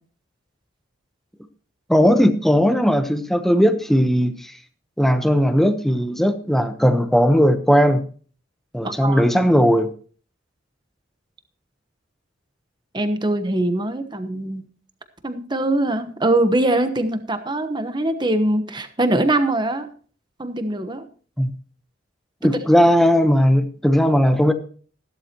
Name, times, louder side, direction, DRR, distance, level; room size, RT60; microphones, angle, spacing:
voice 1, 1.9-4.5 5.0-8.0 8.7-9.9 21.4-21.5 22.4-24.5, equal, ahead, 8 dB, 0.9 m, -17 dB
voice 2, 8.8-9.2 12.9-14.6 15.2-19.9 20.4-21.0, right 1 dB, 20° right, 9 dB, 1.1 m, -22 dB
14.5 x 12.5 x 3.0 m, 0.42 s
head